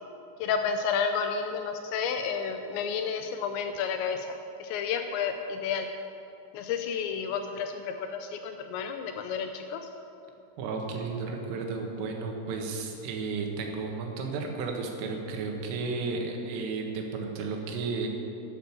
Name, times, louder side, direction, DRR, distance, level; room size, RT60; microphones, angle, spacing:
voice 1, 0.4-4.3 4.6-5.9 6.5-9.8, left 6 dB, 80° left, 6 dB, 2.7 m, -31 dB
voice 2, 10.6-18.1, right 4 dB, 90° right, 2 dB, 4.1 m, -33 dB
12.0 x 10.5 x 7.3 m, 2.8 s
omnidirectional pair, 5.6 m